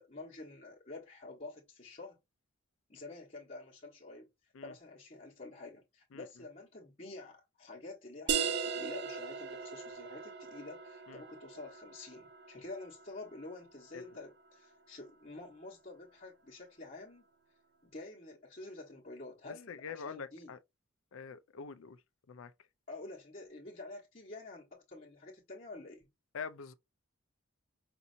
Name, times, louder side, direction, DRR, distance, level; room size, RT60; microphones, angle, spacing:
voice 1, 0.0-2.2 2.9-4.3 4.6-17.2 17.8-20.5 22.9-26.1, left 2 dB, 35° left, 1.3 m, -48 dB
sound 1, 8.3-13.6, right 6 dB, 55° right, 0.5 m, -38 dB
voice 2, 19.5-20.6 21.1-22.0 22.3-22.5 26.3-26.7, left 5 dB, 80° left, 0.5 m, -45 dB
5.3 x 2.7 x 2.6 m
head